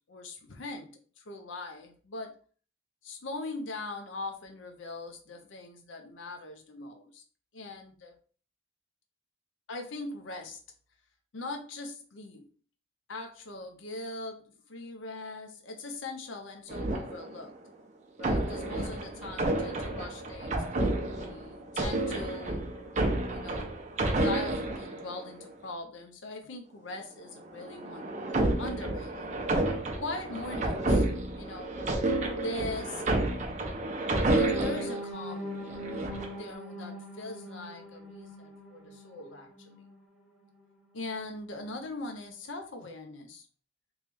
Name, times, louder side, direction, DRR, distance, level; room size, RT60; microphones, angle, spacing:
voice 1, 0.1-2.3 3.0-7.2 7.5-8.2 9.7-10.6 11.3-12.5 13.1-17.5 18.2-20.6 21.2-22.6 23.3-23.8 24.2-28.1 28.6-29.4 30.0-31.0 31.4-31.7 32.3-33.0 34.3-35.6 36.3-39.5 40.9-43.5, left 2 dB, 80° left, 4 dB, 0.6 m, -41 dB
sound 1, 16.7-17.6 18.2-25.5 27.4-35.0 35.6-36.4, right 2 dB, 40° right, 0.7 m, -30 dB
sound 2, 34.0-40.0 40.4-40.6 41.0-41.2, left 1 dB, 5° right, 1.6 m, -42 dB
3.4 x 3.1 x 3.3 m, 0.41 s
head